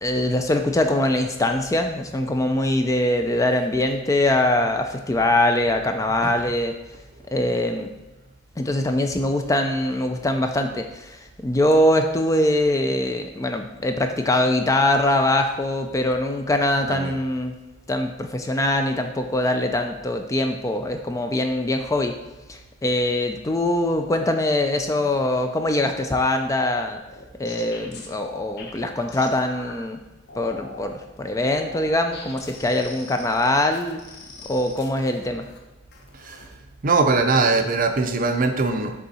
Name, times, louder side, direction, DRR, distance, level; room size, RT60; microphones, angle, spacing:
voice 1, 0.0-6.7 7.3-7.9 8.6-17.5 17.9-22.1 22.5-27.0 27.4-30.0 30.4-34.0 34.5-35.5, left 1 dB, 15° left, 6 dB, 0.3 m, -22 dB
voice 2, 16.9-17.2 36.1-36.5 36.8-38.9, right 3 dB, 45° right, 6 dB, 0.5 m, -21 dB
sound 1, 27.0-29.8 30.3-30.9 31.3-35.6 35.9-36.6 36.9-37.3, left 3 dB, 55° left, 0.8 m, -42 dB
6.7 x 3.6 x 4.2 m, 1.1 s
head